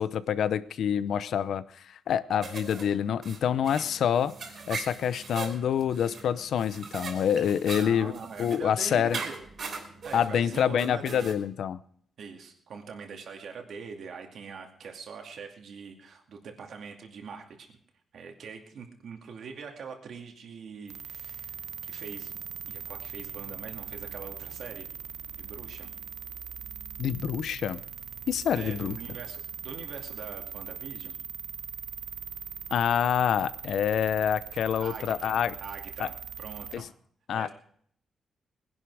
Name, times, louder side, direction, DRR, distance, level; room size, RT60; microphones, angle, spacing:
voice 1, 0.0-4.3 4.7-8.1 8.4-9.2 10.1-11.8 27.0-27.8 28.3-29.0 32.7-35.5 36.0-36.1 36.7-36.9 37.3-37.5, left 8 dB, 70° left, 16 dB, 0.7 m, -27 dB
sound 1, 2.4-11.3, right 4 dB, 45° right, 3.3 m, -40 dB
voice 2, 7.7-9.3 10.0-11.3 12.2-17.8 18.1-22.3 22.7-24.9 25.4-25.9 28.5-31.2 34.8-36.9 37.3-37.5, right 5 dB, 60° right, 3 dB, 2.5 m, -43 dB
sound 2, 20.9-36.8, right 8 dB, 80° right, 1.0 m, -41 dB
20.0 x 11.0 x 4.8 m, 0.63 s
wide cardioid pair, 145°, 0 cm